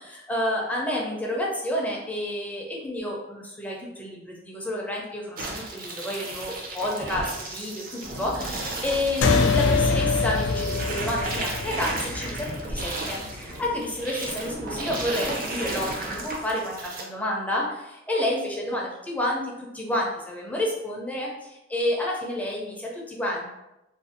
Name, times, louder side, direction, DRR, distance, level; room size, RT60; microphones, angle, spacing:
voice 1, 0.0-23.5, left 1 dB, 10° left, -2 dB, 0.5 m, -30 dB
sound 1, 5.4-17.0, right 2 dB, 50° right, 0.5 m, -34 dB
sound 2, 8.0-16.3, equal, 85° right, 0.9 m, -41 dB
sound 3, 9.2-14.0, left 4 dB, 80° left, 0.3 m, -25 dB
2.5 x 2.3 x 2.6 m, 0.91 s
head